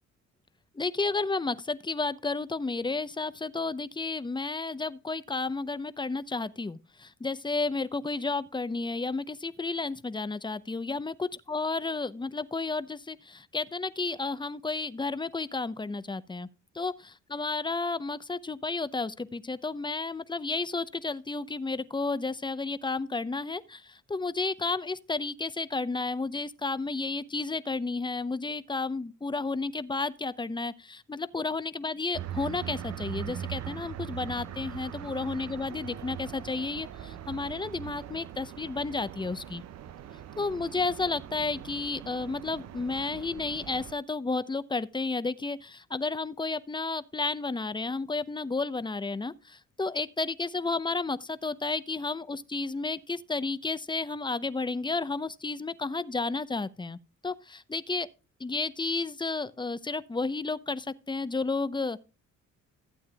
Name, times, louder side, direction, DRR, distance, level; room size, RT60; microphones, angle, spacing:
voice 1, 0.7-16.5 16.7-39.6 40.4-58.1 58.4-62.0, left 3 dB, 15° left, 0.8 m, -32 dB
sound 1, 32.1-43.9, right 10 dB, 60° right, 0.7 m, -41 dB
15.0 x 8.7 x 2.3 m
cardioid pair, 90°, 30 cm